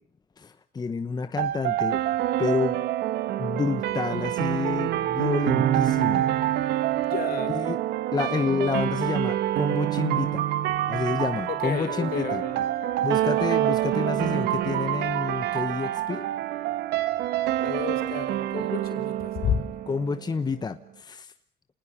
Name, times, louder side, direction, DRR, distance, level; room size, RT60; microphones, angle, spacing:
voice 1, 0.4-2.0 2.4-2.8 3.4-6.3 7.5-7.8 8.1-10.5 10.9-12.4 13.0-16.3 19.9-21.3, left 5 dB, 25° left, 1.0 m, -29 dB
sound 1, 1.4-20.3, right 13 dB, 80° right, 1.4 m, -26 dB
voice 2, 7.1-7.6 11.5-12.6 17.6-19.7, left 8 dB, 65° left, 5.1 m, -31 dB
28.5 x 19.5 x 7.3 m
cardioid pair, 110°, 17 cm